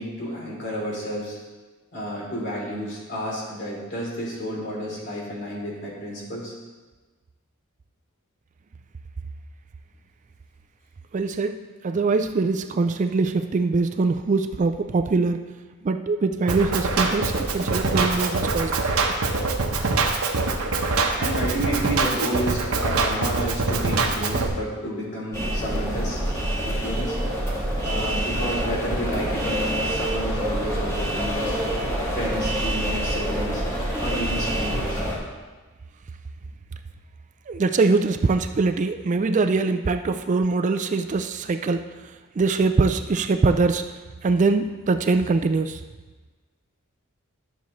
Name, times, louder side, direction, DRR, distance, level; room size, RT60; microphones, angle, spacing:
voice 1, 0.0-1.4 1.9-6.5 21.2-26.2 26.6-27.2 27.8-31.6 32.1-33.6 34.0-35.0, equal, 55° left, -4 dB, 3.0 m, -31 dB
voice 2, 11.1-15.4 15.8-18.8 37.5-41.8 42.4-43.8 44.2-45.8, right 3 dB, 35° right, 9 dB, 0.4 m, -23 dB
Drum kit, 16.5-24.5, right 3 dB, 90° right, 1.0 m, -24 dB
sound 1, 25.3-35.2, right 1 dB, 15° left, 1.7 m, -26 dB
12.0 x 7.0 x 3.1 m, 1.3 s
head